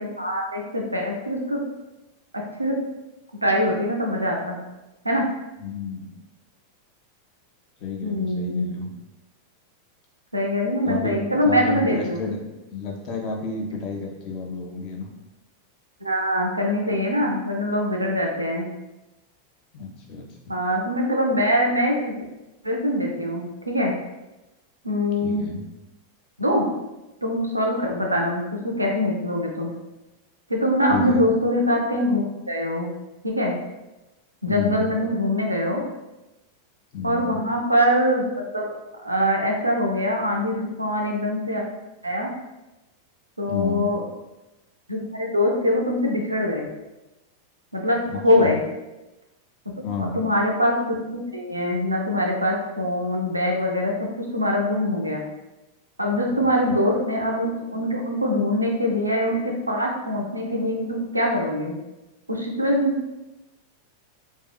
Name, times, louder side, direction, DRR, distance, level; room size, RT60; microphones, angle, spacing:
voice 1, 0.0-1.6 2.3-2.8 3.4-4.6 5.0-5.3 8.0-8.7 10.3-12.2 16.0-18.7 20.5-22.0 22.6-23.9 24.8-25.5 26.4-26.6 27.2-29.7 30.5-32.9 33.2-33.5 34.4-35.8 37.0-38.3 38.5-38.7 39.0-41.6 42.0-42.3 43.4-44.0 44.9-46.7 47.7-48.6 50.2-55.2 56.0-61.7 62.3-62.9, left 1 dB, 85° right, 0 dB, 0.4 m, -23 dB
voice 2, 5.6-6.2 7.8-8.9 10.8-12.4 12.7-15.1 19.7-20.5 25.2-25.6 30.9-31.2 34.5-34.9 36.9-37.4 43.5-43.9 48.1-48.6 49.8-50.2 56.6-56.8, left 4 dB, 40° left, 0 dB, 0.5 m, -30 dB
2.6 x 2.3 x 2.2 m, 1.0 s
figure-of-eight pair, 90°, 0 cm